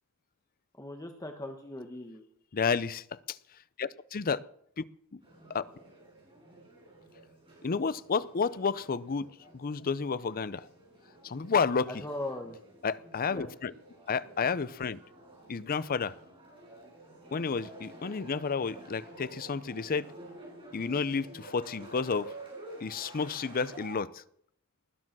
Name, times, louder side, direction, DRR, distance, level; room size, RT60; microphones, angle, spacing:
voice 1, 0.8-2.2 11.9-12.6 13.3-13.5, left 1 dB, 15° left, 4 dB, 1.5 m, -39 dB
voice 2, 2.5-3.4 3.8-4.4 4.8-4.9 5.1-5.2 5.5-5.6 7.6-9.3 9.5-10.7 11.2-11.9 12.8-13.7 14.1-15.0 15.5-16.1 17.3-20.1 20.7-22.3 22.8-24.2, left 5 dB, 40° left, 17 dB, 0.5 m, -31 dB
sound 1, 5.2-24.0, right 1 dB, 25° right, 6.3 m, -50 dB
20.0 x 9.9 x 6.1 m, 0.68 s
head